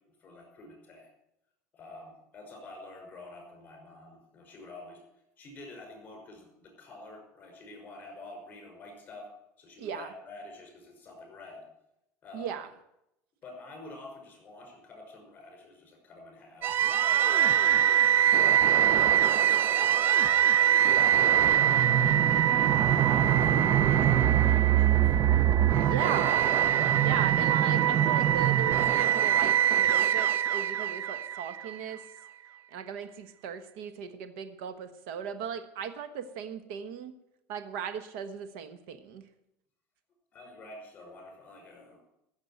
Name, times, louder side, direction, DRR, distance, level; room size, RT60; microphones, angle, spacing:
voice 1, 0.2-1.1 1.7-5.0 5.4-9.3 9.6-11.7 12.2-12.5 13.4-16.7 17.2-18.1 18.3-22.6 22.9-25.2 40.3-42.0, left 2 dB, 25° left, 2 dB, 5.7 m, -48 dB
voice 2, 9.8-10.1 12.3-12.7 25.8-26.5 27.0-32.0 32.7-37.1 37.5-39.3, right 7 dB, 75° right, 10 dB, 1.2 m, -37 dB
sound 1, 16.6-31.8, right 10 dB, 35° right, 0.4 m, -23 dB
14.5 x 7.3 x 9.1 m, 0.83 s
cardioid pair, 160°, 6 cm